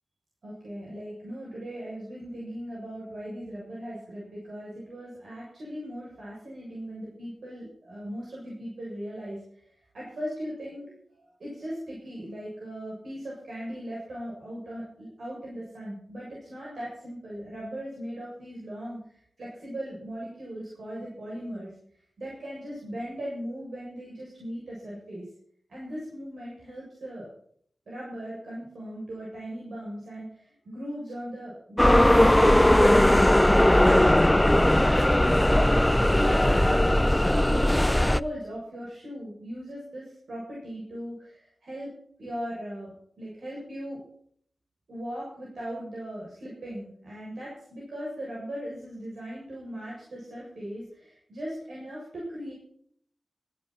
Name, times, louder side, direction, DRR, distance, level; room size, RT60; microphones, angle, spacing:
voice 1, 0.4-9.4 9.9-10.9 11.4-21.7 22.2-25.2 25.7-27.3 27.9-35.5 35.9-41.9 42.2-44.0 44.9-52.5, equal, 80° right, -5 dB, 7.6 m, -38 dB
sound 1, 31.8-38.2, left 1 dB, 10° left, 0.5 m, -19 dB
17.0 x 13.5 x 4.4 m, 0.64 s
wide cardioid pair, 70°, 0 cm